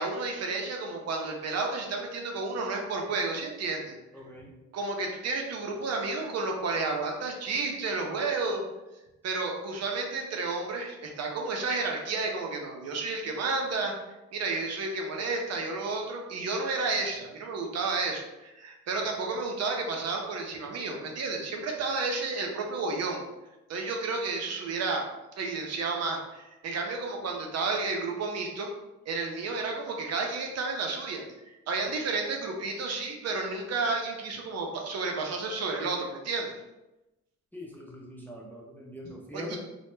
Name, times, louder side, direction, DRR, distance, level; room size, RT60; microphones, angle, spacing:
voice 1, 0.0-4.0 4.7-8.6 9.2-13.9 14.3-23.2 23.7-25.0 25.4-28.7 29.1-31.2 31.7-36.5 39.3-39.6, right 3 dB, 60° right, 1 dB, 0.5 m, -31 dB
voice 2, 4.1-4.5 37.5-39.6, left 1 dB, 5° left, -2 dB, 0.4 m, -43 dB
2.1 x 2.0 x 3.0 m, 0.99 s
cardioid pair, 90°, 30 cm